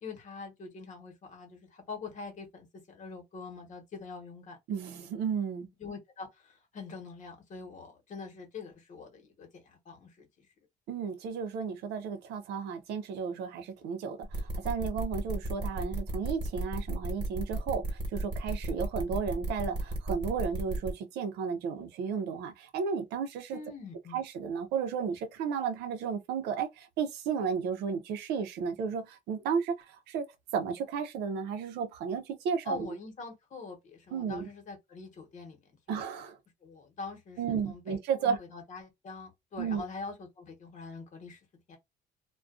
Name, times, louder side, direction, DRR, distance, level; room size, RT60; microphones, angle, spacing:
voice 1, 0.0-4.6 5.8-10.5 23.5-24.2 32.6-35.6 35.9-36.0 36.6-41.4 41.7-41.8, left 4 dB, 45° left, 1.0 m, -44 dB
voice 2, 4.7-5.7 10.9-23.6 24.1-30.3 30.5-32.9 34.1-34.5 35.9-36.4 37.4-38.4 39.6-39.8, right 6 dB, 85° right, 0.6 m, -33 dB
sound 1, 14.2-20.9, right 2 dB, 25° right, 1.0 m, -34 dB
2.4 x 2.2 x 2.3 m
cardioid pair, 110°, 17 cm